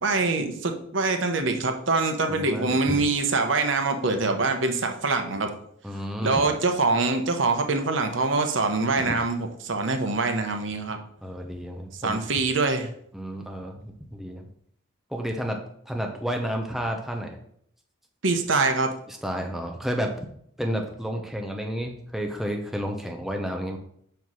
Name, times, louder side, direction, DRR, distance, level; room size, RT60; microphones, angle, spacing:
voice 1, 0.0-5.5 6.2-11.0 12.0-12.9 18.2-18.9, right 3 dB, 65° right, 6 dB, 0.9 m, -24 dB
voice 2, 2.3-3.0 5.8-6.3 9.0-9.1 11.2-12.2 13.1-14.5 15.1-15.6 15.9-17.4 19.1-20.3 20.6-23.8, equal, ahead, 2 dB, 0.7 m, -31 dB
5.4 x 4.6 x 6.2 m, 0.67 s
head